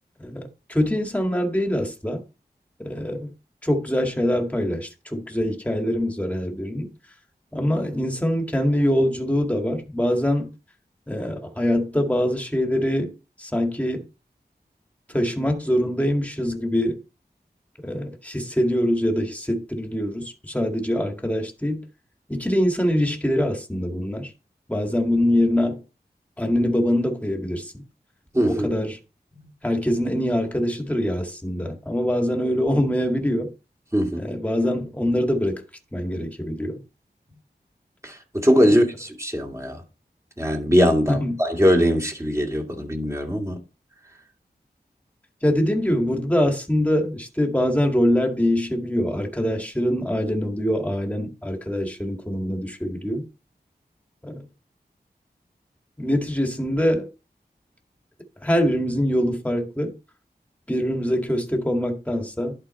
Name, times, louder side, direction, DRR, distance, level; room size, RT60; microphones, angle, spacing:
voice 1, 0.2-2.2 2.8-3.3 3.6-6.9 7.5-10.5 11.1-13.1 13.4-14.0 15.1-17.0 17.8-21.8 22.3-24.3 24.7-25.8 26.4-27.8 28.5-29.0 29.6-33.5 34.2-35.6 35.9-36.8 41.1-41.3 45.4-53.3 54.2-54.4 56.0-57.1 58.4-59.9 60.7-62.5, equal, 10° left, 1.9 m, -24 dB
voice 2, 28.3-28.7 29.3-29.5 33.9-34.2 38.0-39.8 40.4-43.6, equal, 15° right, 2.3 m, -21 dB
11.0 x 4.2 x 4.2 m
wide cardioid pair, 60°, 17 cm